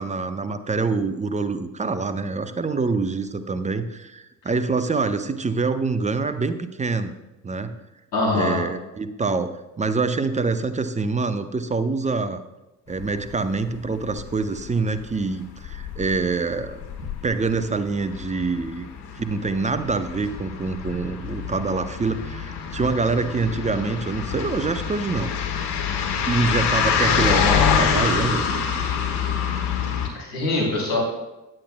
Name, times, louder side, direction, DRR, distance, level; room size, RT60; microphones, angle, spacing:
voice 1, 0.0-7.1 7.4-7.8 8.3-12.4 12.9-16.8 17.2-18.9 19.2-25.3 26.3-28.4, right 4 dB, 15° right, 11 dB, 0.6 m, -25 dB
voice 2, 8.1-8.6 30.1-31.0, left 2 dB, 75° left, -6 dB, 3.5 m, -23 dB
sound 1, 13.0-13.3 13.6-14.8 15.1-15.3 15.6-30.1, left 6 dB, 50° left, 1.6 m, -26 dB
16.0 x 10.0 x 2.2 m, 1.0 s
figure-of-eight pair, 50°, 50 cm